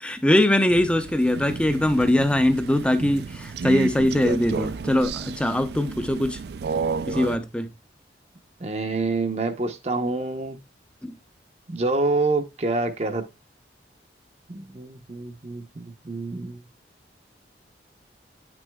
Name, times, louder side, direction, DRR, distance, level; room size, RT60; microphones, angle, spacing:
voice 1, 0.0-6.4 7.1-7.7 11.0-11.1, left 1 dB, 5° left, 0.5 m, -22 dB
Crow, 0.7-7.4, right 5 dB, 65° right, 0.4 m, -32 dB
voice 2, 8.6-10.6 11.7-13.2 14.5-16.6, right 3 dB, 35° right, 0.7 m, -27 dB
8.5 x 6.2 x 2.2 m
head